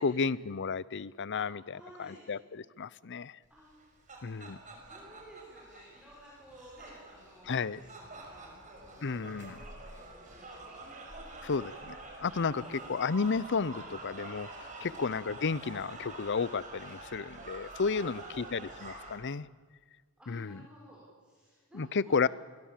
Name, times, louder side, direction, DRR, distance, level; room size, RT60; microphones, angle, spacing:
voice 1, 0.0-1.6 2.0-3.4 4.2-4.6 7.5-7.8 9.0-9.6 11.4-19.5 20.3-20.6 21.7-22.3, left 5 dB, 55° left, 20 dB, 0.7 m, -32 dB
voice 2, 1.7-2.3 3.5-3.7 4.2-9.4 9.8-10.5 10.8-10.9 11.2-11.7 12.4-12.8 14.8-15.1 17.9-18.6 20.2-22.3, equal, 5° right, -6 dB, 6.8 m, -55 dB
sound 1, 3.7-19.2, right 2 dB, 35° right, 5.6 m, -47 dB
sound 2, 7.8-15.8, equal, 80° right, 6.0 m, -65 dB
28.5 x 21.5 x 7.5 m, 1.5 s
head